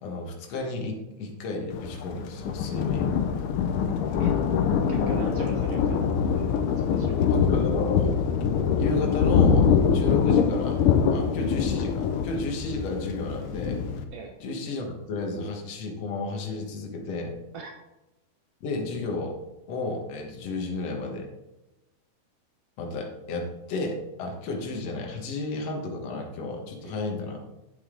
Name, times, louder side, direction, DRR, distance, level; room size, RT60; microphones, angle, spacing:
voice 1, 0.0-3.1 7.3-8.1 8.7-10.8 11.1-13.8 14.4-17.4 18.6-19.4 19.7-21.3 22.8-27.4, left 3 dB, 60° left, 2 dB, 2.3 m, -32 dB
Thunder, 1.7-14.0, left 7 dB, 85° left, 1.2 m, -24 dB
voice 2, 4.9-6.5 6.9-7.2 14.1-14.3 17.5-17.8 26.8-27.0, right 4 dB, 65° right, 3 dB, 1.7 m, -40 dB
8.5 x 8.4 x 3.8 m, 0.99 s
omnidirectional pair, 3.4 m